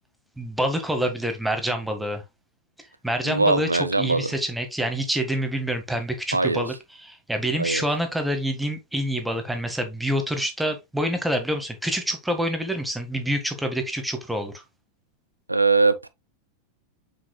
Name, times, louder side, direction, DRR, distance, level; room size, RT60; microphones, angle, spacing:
voice 1, 0.4-2.2 3.0-14.6, right 1 dB, 5° right, 1.7 m, -27 dB
voice 2, 3.2-4.3 6.3-6.6 7.6-7.9 15.5-16.1, right 3 dB, 85° right, 0.7 m, -21 dB
7.3 x 6.2 x 2.3 m
figure-of-eight pair, 90°, 0 cm